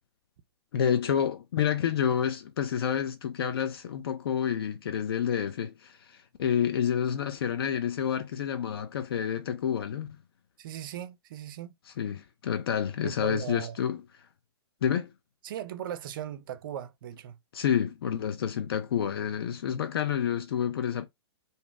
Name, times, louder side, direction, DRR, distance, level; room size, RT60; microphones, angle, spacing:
voice 1, 0.7-10.1 12.0-14.0 14.8-15.1 17.5-21.1, left 8 dB, 60° left, 0.5 m, -29 dB
voice 2, 10.6-11.7 13.0-13.8 15.4-17.4, right 10 dB, 50° right, 0.4 m, -38 dB
2.7 x 2.0 x 3.2 m
figure-of-eight pair, 115°, 14 cm